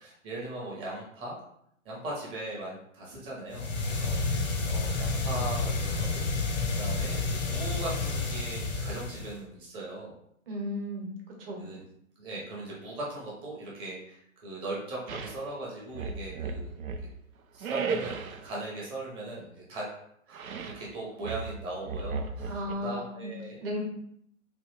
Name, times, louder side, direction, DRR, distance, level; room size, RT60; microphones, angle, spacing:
voice 1, 0.0-1.4 1.8-6.2 6.7-10.1 11.6-11.8 12.2-16.7 17.5-19.9 20.3-23.6, right 2 dB, 15° right, -5 dB, 0.7 m, -39 dB
sound 1, 3.5-9.4, left 3 dB, 35° left, 0.5 m, -30 dB
voice 2, 10.5-11.1 11.4-11.6 22.5-23.3 23.6-23.8, equal, 45° right, 0 dB, 1.1 m, -34 dB
sound 2, 15.1-15.4 15.9-17.1 17.6-18.5 20.3-20.9 21.2-22.7, right 4 dB, 90° right, 0.5 m, -35 dB
3.1 x 2.4 x 3.2 m, 0.71 s
figure-of-eight pair, 130°, 41 cm